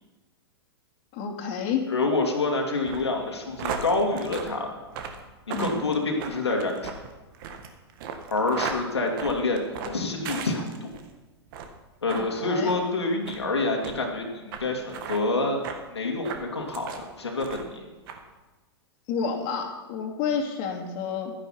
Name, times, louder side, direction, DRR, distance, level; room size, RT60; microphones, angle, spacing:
voice 1, 1.1-1.9 5.5-5.8 12.1-12.7 19.1-21.3, left 6 dB, 45° left, 1 dB, 2.5 m, -30 dB
voice 2, 1.9-4.7 5.6-6.9 8.3-10.9 12.0-15.6 15.9-17.8, left 2 dB, 85° left, 0 dB, 2.4 m, -27 dB
sound 1, 2.8-11.1 11.5-11.8 12.1-12.3 12.7-12.8 13.2-13.4 13.8-14.0 14.5-14.6 14.9-15.2 15.6-15.8 16.2-17.0 17.4-17.8 18.1-18.2, right 6 dB, 55° right, 1.8 m, -36 dB
12.5 x 10.5 x 5.8 m, 1.2 s
hypercardioid pair, 105°, 14 cm